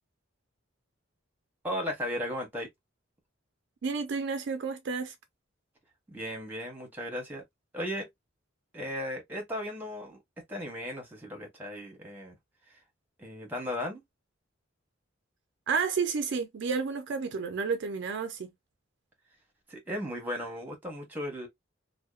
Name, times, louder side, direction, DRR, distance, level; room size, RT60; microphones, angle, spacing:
voice 1, 1.6-2.7 6.1-7.4 7.7-8.1 8.7-10.2 10.5-12.3 13.2-14.0 19.7-21.5, left 1 dB, 10° right, 1.0 m, -36 dB
voice 2, 3.8-5.1 15.7-18.5, right 5 dB, 60° right, 0.4 m, -31 dB
2.7 x 2.1 x 2.3 m
head